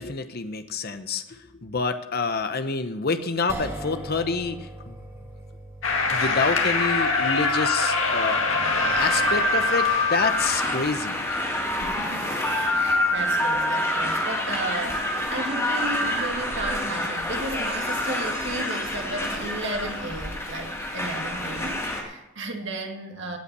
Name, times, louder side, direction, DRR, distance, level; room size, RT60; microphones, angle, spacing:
voice 1, 0.0-5.0 6.1-8.4 8.9-11.2 17.3-17.4 18.6-18.8, left 4 dB, 50° left, 9 dB, 0.9 m, -28 dB
sound 1, 3.5-15.8, right 1 dB, 15° right, 2.2 m, -44 dB
sound 2, 5.8-10.7, left 3 dB, 65° left, 2.1 m, -24 dB
sound 3, 8.6-22.0, left 1 dB, 15° left, 2.6 m, -27 dB
voice 2, 11.8-23.4, right 2 dB, 60° right, 3 dB, 2.0 m, -34 dB
16.5 x 5.7 x 8.2 m, 0.93 s
head